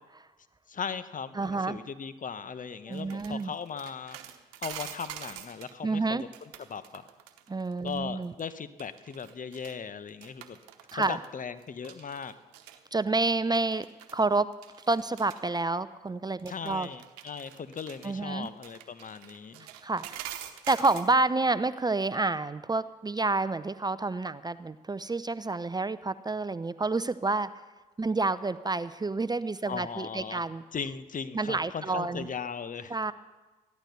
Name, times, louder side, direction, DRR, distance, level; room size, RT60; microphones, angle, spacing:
voice 1, 0.7-4.2 4.6-7.0 7.8-10.6 10.9-12.3 16.5-19.7 29.7-30.4 30.7-32.9, left 6 dB, 40° left, 13 dB, 1.0 m, -38 dB
voice 2, 1.4-1.8 2.9-3.5 5.8-6.2 7.5-8.3 10.9-11.2 12.9-13.9 14.1-14.5 14.9-16.9 18.0-18.5 19.8-20.3 20.7-27.5 28.0-30.6 31.3-32.3 32.9-33.1, right 3 dB, 20° right, 14 dB, 0.6 m, -29 dB
sound 1, 2.9-5.7 6.2-8.4 8.8-9.8 10.1-11.3 11.6-12.8 13.5-14.2 14.5-15.4 16.4-21.2, right 11 dB, 85° right, 1.0 m, -45 dB
15.0 x 11.5 x 6.8 m, 1.2 s
hypercardioid pair, 50°, 20 cm